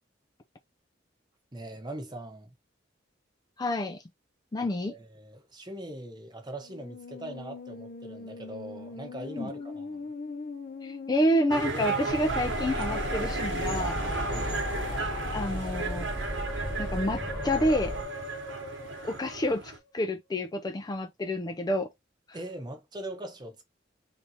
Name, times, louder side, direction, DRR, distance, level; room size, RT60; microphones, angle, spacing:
voice 1, 1.5-2.5 4.9-10.1 14.3-14.6 22.3-23.6, right 1 dB, 25° right, 0.9 m, -41 dB
voice 2, 3.6-4.0 4.5-4.9 9.4-9.5 10.8-14.0 15.3-16.1 16.8-17.9 19.0-21.9, left 1 dB, 20° left, 0.4 m, -29 dB
Musical instrument, 6.5-19.9, left 4 dB, 50° left, 0.8 m, -40 dB
sound 1, 11.5-19.8, right 4 dB, 70° right, 1.2 m, -34 dB
sound 2, 12.1-18.0, right 1 dB, 5° left, 1.4 m, -36 dB
3.5 x 2.7 x 4.2 m
head